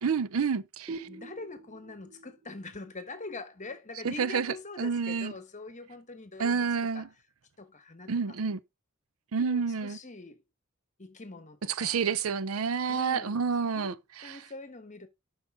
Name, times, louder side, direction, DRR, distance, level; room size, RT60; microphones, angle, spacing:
voice 1, 0.0-1.1 4.0-5.3 6.4-7.1 8.1-8.6 9.3-10.0 11.8-14.4, right 5 dB, 80° right, 0.6 m, -29 dB
sound 1, 0.9-4.3, right 3 dB, 15° right, 1.0 m, -46 dB
voice 2, 1.1-6.7 6.9-7.1 7.6-8.4 9.4-10.4 11.0-12.0 12.9-13.4 13.7-14.0 14.2-15.1, left 3 dB, 35° left, 1.1 m, -43 dB
11.5 x 5.2 x 3.5 m
head